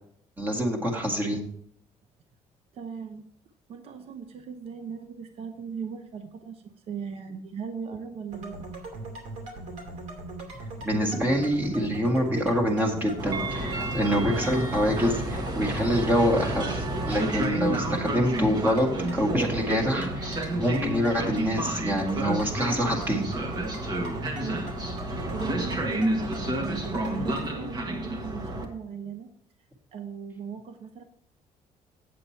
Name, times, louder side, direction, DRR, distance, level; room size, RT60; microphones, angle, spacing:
voice 1, 0.4-1.5 10.8-18.9 19.1-23.3, equal, 15° right, 0 dB, 1.9 m, -26 dB
voice 2, 2.7-3.3 3.7-8.7 24.3-24.7 25.3-29.3 29.9-31.0, right 6 dB, 50° right, 7 dB, 0.8 m, -38 dB
sound 1, 8.3-27.4, right 2 dB, 70° right, 2.6 m, -39 dB
Train, 13.2-28.6, right 1 dB, 35° right, 1.5 m, -30 dB
8.6 x 7.7 x 4.4 m, 0.63 s
cardioid pair, 150°, 13 cm